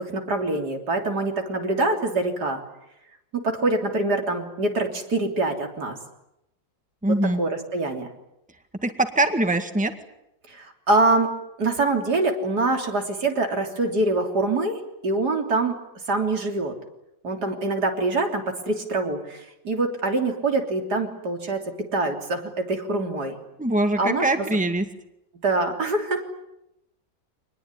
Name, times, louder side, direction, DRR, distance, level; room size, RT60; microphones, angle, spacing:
voice 1, 0.0-2.6 3.3-6.0 7.1-8.1 10.5-11.3 11.6-15.8 16.1-16.7 17.2-21.6 21.9-23.4 24.0-24.5 25.4-26.2, right 2 dB, 80° right, 3 dB, 3.9 m, -24 dB
voice 2, 7.0-7.4 8.8-9.9 23.6-24.8, right 2 dB, 5° right, 7 dB, 1.9 m, -22 dB
26.0 x 20.0 x 9.8 m, 0.86 s
omnidirectional pair, 1.7 m